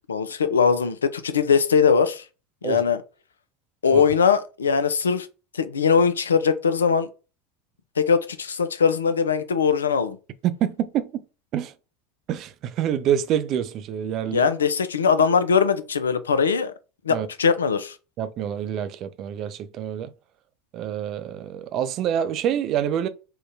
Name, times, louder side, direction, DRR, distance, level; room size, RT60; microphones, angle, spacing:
voice 1, 0.1-2.2 2.6-3.0 3.8-5.3 5.6-7.1 8.0-10.2 14.3-16.7 17.1-17.9, left 6 dB, 75° left, 0.3 m, -21 dB
voice 2, 10.4-11.2 11.5-11.7 12.3-14.5 17.1-17.3 18.2-20.1 20.7-23.1, right 9 dB, 45° right, 0.3 m, -26 dB
3.7 x 2.2 x 2.6 m
figure-of-eight pair, 75°, 0 cm